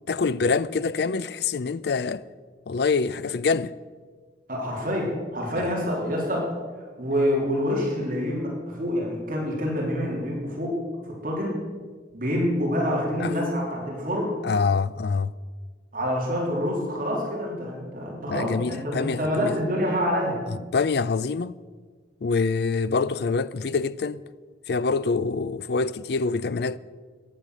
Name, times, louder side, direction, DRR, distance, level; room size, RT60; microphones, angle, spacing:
voice 1, 0.1-2.2 2.7-3.7 5.6-5.8 13.2-13.5 14.4-15.3 18.3-19.6 20.5-21.5 22.2-24.2 24.7-26.8, left 4 dB, 65° left, 0.5 m, -25 dB
voice 2, 4.5-6.5 7.0-10.8 11.1-11.6 12.1-14.4 15.9-20.4, equal, 50° right, 3.3 m, -27 dB
15.0 x 10.5 x 6.2 m
head